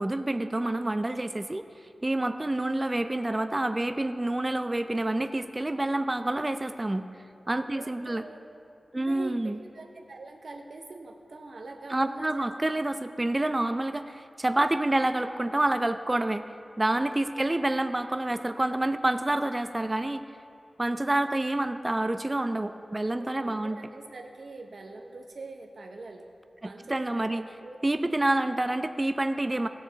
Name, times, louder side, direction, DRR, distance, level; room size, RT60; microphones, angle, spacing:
voice 1, 0.0-1.6 2.0-7.1 7.5-8.2 8.9-9.6 11.9-16.4 16.8-20.2 20.8-23.8 26.6-27.4 27.8-29.7, right 1 dB, 25° right, 9 dB, 0.4 m, -28 dB
voice 2, 7.7-8.4 8.9-12.5 17.4-17.5 22.9-26.3 26.6-27.8, right 3 dB, 70° right, 3 dB, 0.8 m, -44 dB
16.5 x 7.0 x 4.0 m, 2.6 s
wide cardioid pair, 70°, 0 cm